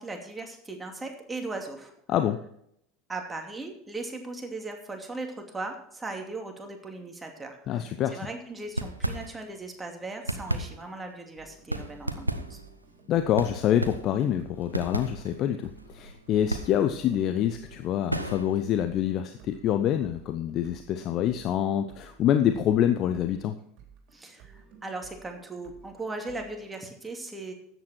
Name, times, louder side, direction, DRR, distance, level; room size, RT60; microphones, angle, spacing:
voice 1, 0.0-1.9 3.1-12.6 24.1-27.5, right 2 dB, 15° right, 3 dB, 2.7 m, -38 dB
voice 2, 2.1-2.4 7.7-8.2 13.1-23.5, left 10 dB, 40° left, 8 dB, 0.9 m, -26 dB
sound 1, 8.6-9.7 10.0-18.7, right 1 dB, 90° right, 0.9 m, -34 dB
sound 2, 11.4-26.8, right 6 dB, 45° right, 3.7 m, -54 dB
13.0 x 9.3 x 4.5 m, 0.71 s
figure-of-eight pair, 75°, 0 cm